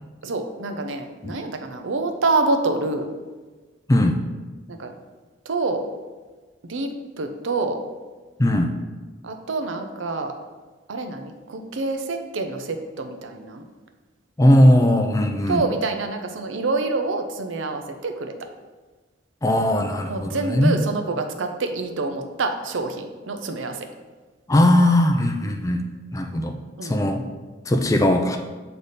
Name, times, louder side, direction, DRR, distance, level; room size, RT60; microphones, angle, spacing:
voice 1, 0.2-3.1 4.7-4.9 5.4-5.8 6.6-7.8 9.2-10.3 10.9-13.7 15.5-18.3 20.0-23.9 26.8-27.1, right 3 dB, 75° right, 5 dB, 0.6 m, -27 dB
voice 2, 8.4-8.7 14.4-15.6 19.4-20.7 24.5-25.8 26.1-26.5 26.9-27.2 27.7-28.4, left 1 dB, 15° left, 4 dB, 0.4 m, -18 dB
7.9 x 3.4 x 4.1 m, 1.3 s
head